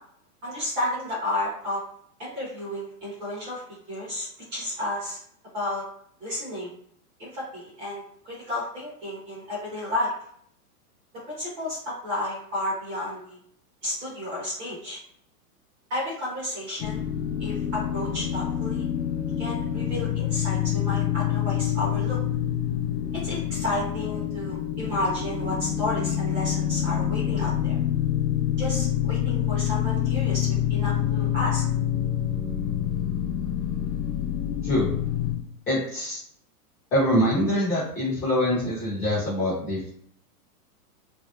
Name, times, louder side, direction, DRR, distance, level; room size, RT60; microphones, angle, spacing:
voice 1, 0.4-1.8 2.2-3.6 3.9-5.2 5.5-5.8 6.2-6.7 7.2-10.1 11.3-13.4 13.8-15.0 15.9-17.0 17.4-18.9 19.4-22.2 23.1-27.8 28.6-31.6, left 1 dB, 20° right, -6 dB, 0.8 m, -32 dB
sound 1, 16.8-35.3, left 10 dB, 85° left, 0.9 m, -27 dB
voice 2, 35.7-36.2 36.9-39.9, left 1 dB, 15° left, -9 dB, 0.8 m, -24 dB
3.2 x 2.6 x 2.3 m, 0.66 s
supercardioid pair, 175°, 47 cm